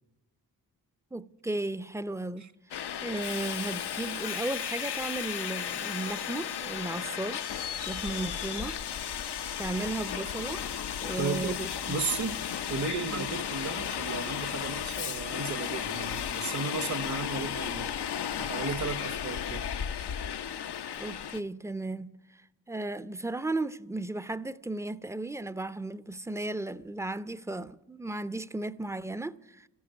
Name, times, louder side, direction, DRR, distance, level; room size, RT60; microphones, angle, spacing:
voice 1, 1.1-2.4 3.0-7.4 7.9-8.8 9.6-10.6 11.0-12.0 13.1-13.3 21.0-22.1 22.7-29.7, right 2 dB, 5° right, 0.6 m, -35 dB
Subway metro underground, 2.7-21.4, left 9 dB, 70° left, 0.7 m, -34 dB
voice 2, 11.2-11.6 11.9-12.4 12.7-18.0 18.4-19.7, right 5 dB, 45° right, 1.0 m, -34 dB
13.5 x 11.0 x 8.9 m
supercardioid pair, 45°, 42 cm